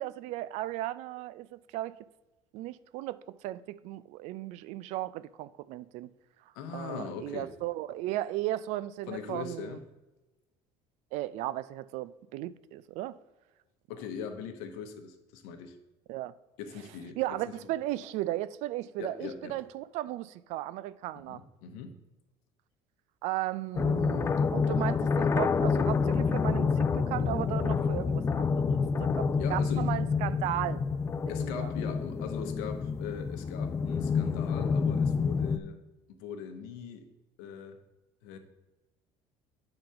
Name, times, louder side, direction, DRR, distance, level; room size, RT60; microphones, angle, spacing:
voice 1, 0.0-1.9 2.5-6.1 6.7-9.8 11.1-13.2 16.1-16.3 17.2-21.4 23.2-30.8 31.2-31.7, right 15 dB, 70° right, 0.4 m, -36 dB
voice 2, 6.5-7.5 9.1-9.8 13.9-15.8 16.6-17.4 17.6-17.7 19.0-19.6 21.3-22.0 29.4-29.9 31.3-35.8 36.1-37.1 37.4-37.8 38.2-38.4, left 7 dB, 90° left, 1.0 m, -40 dB
sound 1, 23.7-35.6, left 5 dB, 20° left, 0.4 m, -28 dB
8.8 x 3.9 x 5.6 m
cardioid pair, 115°, 12 cm